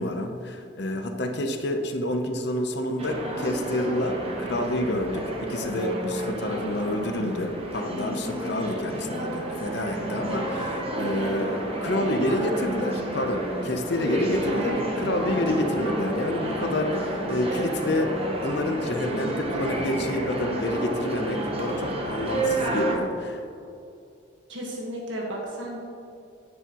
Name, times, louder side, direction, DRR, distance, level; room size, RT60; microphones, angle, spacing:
voice 1, 0.0-18.1 18.4-23.4, left 1 dB, 55° left, 5 dB, 0.7 m, -28 dB
sound 1, 3.0-23.0, right 1 dB, 30° right, 1.0 m, -30 dB
voice 2, 24.5-25.8, right 1 dB, 70° right, -2 dB, 1.5 m, -33 dB
10.5 x 8.7 x 3.0 m, 2.6 s
head